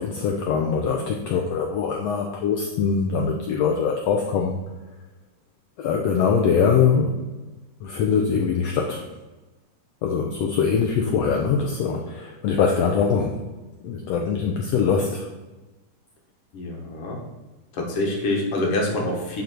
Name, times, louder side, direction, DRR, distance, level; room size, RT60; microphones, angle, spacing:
voice 1, 0.0-4.6 5.8-7.2 7.8-9.1 10.0-13.3 13.8-15.3, left 6 dB, 85° left, 2 dB, 1.4 m, -22 dB
voice 2, 16.5-17.2 17.7-19.4, left 1 dB, 55° left, 0 dB, 1.9 m, -26 dB
11.5 x 3.9 x 4.4 m, 1.2 s
omnidirectional pair, 3.8 m